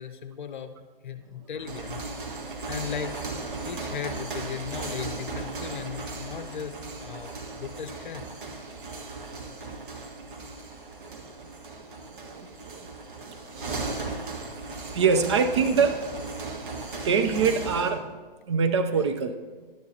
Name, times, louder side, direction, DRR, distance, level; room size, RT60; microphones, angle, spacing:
voice 1, 0.0-2.0 2.7-3.1 3.6-8.3, left 8 dB, 55° left, 8 dB, 0.8 m, -37 dB
sound 1, 1.5-18.0, right 3 dB, 60° right, 1.6 m, -37 dB
voice 2, 11.0-11.3 12.1-12.9 13.3-13.4 14.2-14.5 14.9-16.0 17.0-18.1 18.5-19.4, right 5 dB, 30° right, 7 dB, 0.5 m, -25 dB
11.5 x 9.4 x 2.8 m, 1.4 s
figure-of-eight pair, 130°, 29 cm